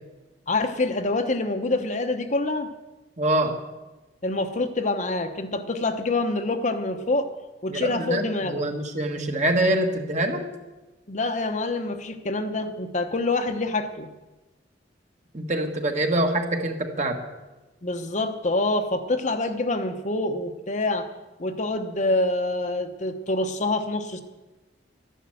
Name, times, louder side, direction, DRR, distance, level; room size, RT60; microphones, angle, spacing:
voice 1, 0.5-2.7 4.2-7.3 7.6-8.7 11.1-14.1 17.8-21.1 21.4-24.2, left 2 dB, 40° left, 7 dB, 1.0 m, -26 dB
voice 2, 3.2-3.6 7.7-10.4 15.3-17.2, right 1 dB, 40° right, 4 dB, 1.6 m, -25 dB
13.0 x 11.0 x 7.8 m, 1.1 s
head